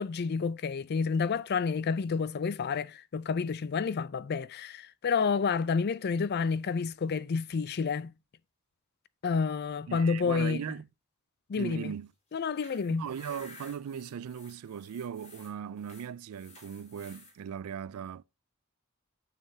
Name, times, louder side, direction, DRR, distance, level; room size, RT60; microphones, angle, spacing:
voice 1, 0.0-8.1 9.2-10.6 11.5-11.9 12.3-13.0, left 5 dB, 50° left, 0.4 m, -29 dB
voice 2, 9.9-10.9 11.5-12.1 12.9-18.2, right 8 dB, 90° right, 0.3 m, -38 dB
sound 1, 12.3-17.3, left 3 dB, 30° left, 3.3 m, -53 dB
9.5 x 6.6 x 2.7 m
head